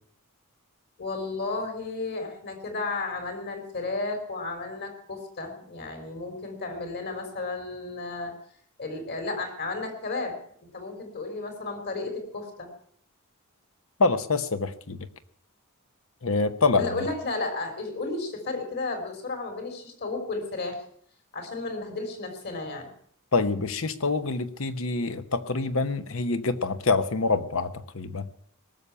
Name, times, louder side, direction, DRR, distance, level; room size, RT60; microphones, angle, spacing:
voice 1, 1.0-8.3 8.8-10.4 10.7-12.7 16.7-20.8 21.3-22.9, left 3 dB, 50° left, 5 dB, 3.6 m, -33 dB
voice 2, 14.0-15.0 16.2-16.9 23.3-28.3, left 3 dB, 65° left, 11 dB, 1.0 m, -26 dB
18.5 x 7.0 x 8.8 m, 0.63 s
head